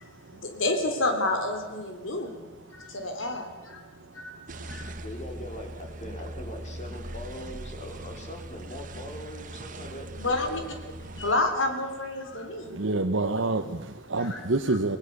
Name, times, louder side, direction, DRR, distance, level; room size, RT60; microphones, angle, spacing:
voice 1, 0.3-3.8 4.1-4.3 4.6-4.9 10.2-10.6 11.0-12.9 14.2-14.8, left 2 dB, 75° left, 5 dB, 3.4 m, -30 dB
sound 1, 4.5-11.3, right 1 dB, 40° right, 1.4 m, -40 dB
voice 2, 5.0-10.7, equal, 35° left, 3 dB, 4.1 m, -41 dB
voice 3, 12.7-15.0, right 2 dB, 75° right, 4 dB, 1.2 m, -27 dB
28.5 x 19.5 x 6.9 m, 1.3 s
head